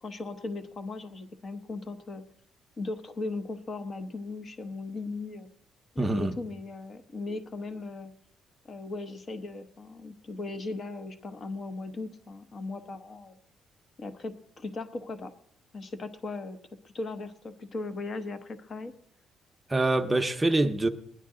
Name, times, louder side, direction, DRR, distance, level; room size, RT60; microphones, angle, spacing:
voice 1, 0.0-2.2 2.8-5.5 5.9-8.1 8.7-13.4 14.0-15.3 15.7-16.6 16.8-18.9, left 3 dB, 35° left, 0.9 m, -38 dB
voice 2, 6.0-6.3 19.7-20.9, right 2 dB, 15° right, 0.7 m, -25 dB
19.0 x 10.5 x 3.7 m
cardioid pair, 145°, 0 cm